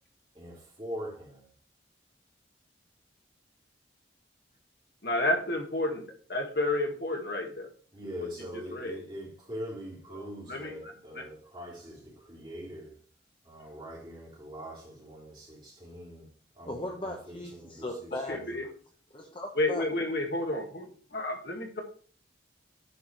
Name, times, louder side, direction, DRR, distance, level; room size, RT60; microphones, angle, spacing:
voice 1, 0.3-1.4 7.9-12.9 13.5-16.2 16.6-17.8, equal, 25° right, 3.3 m, -42 dB
voice 2, 5.0-6.0 6.3-7.7 8.0-9.0 10.1-11.2 18.3-18.6 19.5-21.8, left 2 dB, 55° left, 1.8 m, -31 dB
voice 3, 16.7-18.7 19.1-19.8, left 1 dB, 25° left, 0.9 m, -38 dB
10.0 x 4.8 x 4.7 m
head